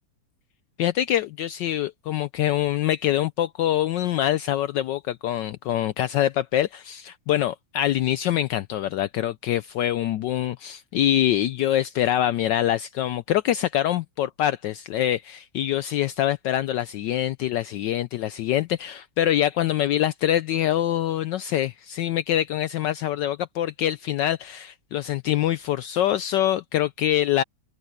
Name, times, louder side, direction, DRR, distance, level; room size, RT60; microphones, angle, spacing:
voice 1, 0.8-27.4, left 12 dB, 80° left, 1.0 m, -24 dB
open air
omnidirectional pair, 2.4 m